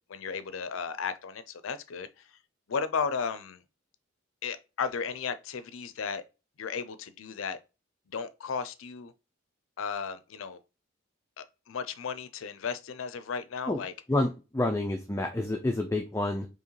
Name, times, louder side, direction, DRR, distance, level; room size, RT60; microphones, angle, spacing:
voice 1, 0.1-2.3 2.7-3.6 4.4-6.2 6.6-7.6 8.1-9.1 9.8-10.6 11.4-13.9, left 5 dB, 75° left, 0.5 m, -34 dB
voice 2, 14.1-16.5, left 2 dB, 15° left, 0.4 m, -28 dB
4.7 x 2.9 x 3.1 m
head